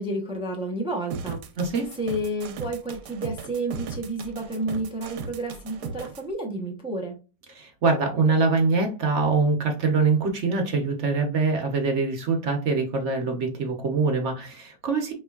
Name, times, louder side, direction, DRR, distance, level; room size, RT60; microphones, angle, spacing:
voice 1, 0.0-1.4 2.0-7.2, right 1 dB, 5° right, 1 dB, 0.4 m, -30 dB
sound 1, 1.1-6.2, right 5 dB, 85° right, 1.3 m, -37 dB
voice 2, 1.6-1.9 7.5-15.1, right 4 dB, 55° right, 3 dB, 1.0 m, -24 dB
5.2 x 3.1 x 2.3 m, 0.32 s
omnidirectional pair, 1.7 m